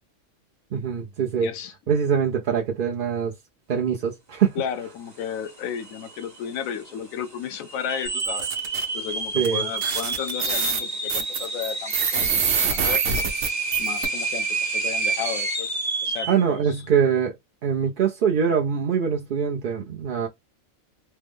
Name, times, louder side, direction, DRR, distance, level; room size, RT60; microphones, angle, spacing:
voice 1, 0.7-1.5 1.9-3.3 3.7-4.6 9.3-9.7 16.3-17.4 17.6-20.3, right 7 dB, 60° right, 0.6 m, -23 dB
voice 2, 1.4-1.7 4.6-8.5 8.9-13.0 13.8-15.7 16.0-16.8, left 8 dB, 85° left, 1.0 m, -33 dB
sound 1, 5.5-5.6 5.8-6.4 6.9-7.0 7.7-16.4, right 3 dB, 15° right, 0.8 m, -29 dB
sound 2, 8.1-8.8 9.4-9.5 9.8-14.1, right 6 dB, 85° right, 1.2 m, -25 dB
3.2 x 2.0 x 3.4 m
omnidirectional pair, 1.4 m